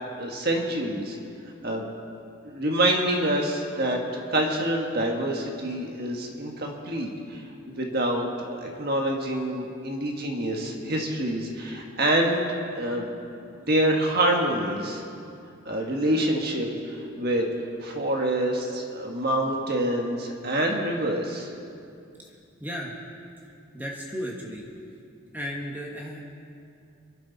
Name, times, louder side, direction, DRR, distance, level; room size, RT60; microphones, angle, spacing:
voice 1, 0.2-1.2 1.6-1.8 2.4-4.0 4.3-7.4 7.7-13.1 13.6-15.0 15.6-17.5 17.8-21.5, right 1 dB, 50° right, 1 dB, 1.6 m, -26 dB
voice 2, 22.6-22.9 23.7-24.6 25.3-26.2, equal, 10° right, -2 dB, 1.4 m, -34 dB
25.5 x 11.5 x 4.1 m, 2.5 s
head